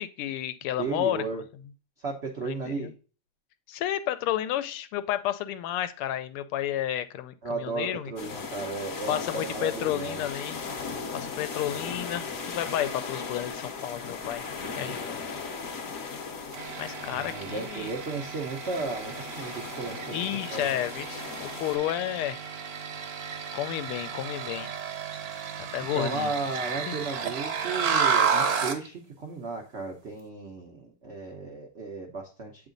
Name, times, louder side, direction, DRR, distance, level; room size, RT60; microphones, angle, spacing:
voice 1, 0.0-1.4 2.4-2.9 3.7-8.1 9.1-10.6 11.1-14.4 14.7-15.2 16.0-16.2 16.8-17.9 20.1-22.4 23.5-24.7 25.7-26.3 26.9-27.0, left 12 dB, 85° left, 12 dB, 1.5 m, -31 dB
voice 2, 0.8-1.4 2.0-2.9 7.4-10.3 17.1-20.8 25.9-32.7, right 3 dB, 75° right, 1 dB, 0.6 m, -34 dB
sound 1, 8.2-21.8, left 5 dB, 55° left, 1.0 m, -38 dB
sound 2, 16.5-28.9, right 6 dB, 60° right, 1.0 m, -32 dB
8.1 x 3.6 x 3.8 m, 0.37 s
omnidirectional pair, 2.4 m